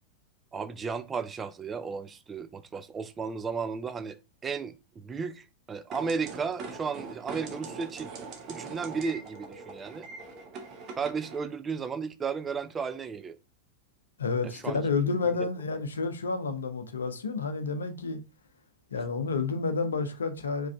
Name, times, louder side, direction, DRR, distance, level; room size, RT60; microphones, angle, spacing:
voice 1, 0.5-4.2 4.4-8.1 8.5-10.1 11.0-13.4 14.4-14.8 15.4-15.5, right 5 dB, 20° right, 0.4 m, -34 dB
sound 1, 5.9-11.4, right 4 dB, 35° right, 1.0 m, -42 dB
voice 2, 14.2-18.2 18.9-20.7, left 4 dB, 70° left, 0.7 m, -30 dB
4.9 x 3.2 x 3.4 m
figure-of-eight pair, 90°, 0 cm